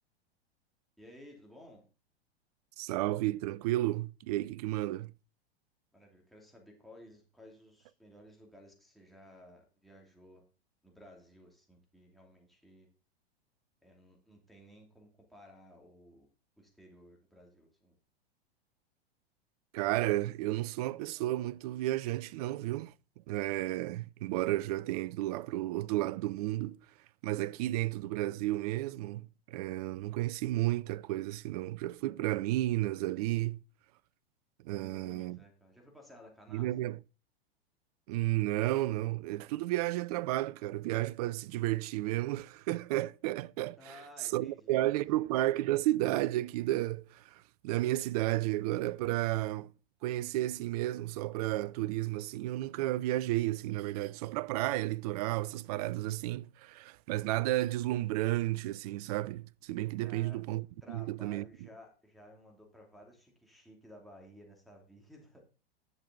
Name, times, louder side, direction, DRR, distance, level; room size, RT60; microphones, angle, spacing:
voice 1, 1.0-1.8 5.9-10.4 10.8-12.9 13.8-16.3 16.6-17.9 34.7-36.7 43.8-45.0 60.0-65.4, left 1 dB, ahead, 2.8 m, -56 dB
voice 2, 2.8-5.1 19.7-22.9 23.3-26.8 27.2-33.6 34.6-35.4 36.5-37.0 38.1-49.7 50.0-61.4, right 16 dB, 40° right, 0.4 m, -32 dB
11.0 x 6.6 x 3.9 m
figure-of-eight pair, 95°, 31 cm